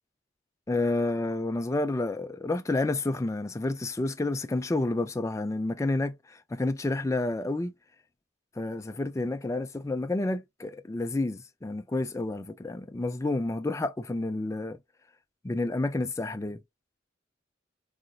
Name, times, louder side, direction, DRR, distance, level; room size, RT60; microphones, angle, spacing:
voice 1, 0.7-7.7 8.6-14.8 15.4-16.6, left 2 dB, 15° left, 0.3 m, -30 dB
4.0 x 2.5 x 2.2 m
head